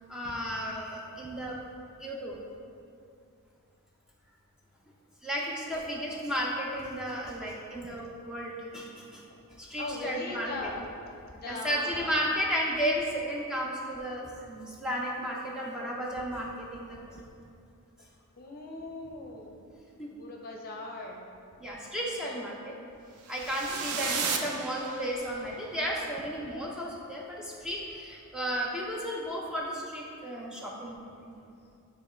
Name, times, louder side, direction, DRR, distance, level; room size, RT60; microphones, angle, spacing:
voice 1, 0.1-1.6 2.0-2.4 5.2-9.2 9.6-10.7 11.5-17.2 20.0-20.1 21.6-22.7 23.3-31.0, equal, 5° right, -4 dB, 0.6 m, -33 dB
voice 2, 9.7-10.9 11.2-12.2 15.1-15.2 18.0-18.1 18.4-19.6 20.1-21.3 22.0-22.5 23.6-24.0, left 2 dB, 45° left, 1 dB, 0.7 m, -41 dB
sound 1, 23.2-25.4, right 5 dB, 90° right, 0.6 m, -34 dB
9.0 x 3.0 x 4.3 m, 2.5 s
head